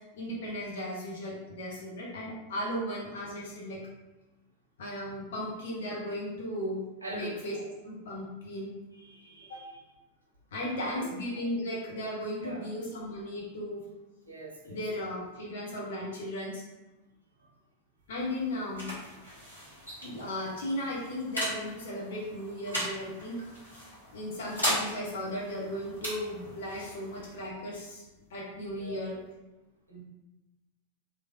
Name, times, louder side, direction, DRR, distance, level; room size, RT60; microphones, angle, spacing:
voice 1, 0.1-3.8 4.8-6.8 7.1-8.7 9.5-9.6 10.5-13.8 14.7-16.6 18.1-18.9 20.0-23.4 24.1-28.0 28.3-29.2, left 1 dB, 60° left, -4 dB, 0.6 m, -36 dB
voice 2, 7.0-7.4 8.9-9.7 10.6-11.1 12.4-12.6 14.2-14.8 17.4-17.5 28.8-29.0 29.9-30.0, right 1 dB, 80° right, -2 dB, 0.7 m, -43 dB
sound 1, 18.0-29.3, equal, 85° left, 1.2 m, -38 dB
3.1 x 2.5 x 2.2 m, 1.0 s
figure-of-eight pair, 90°, 0 cm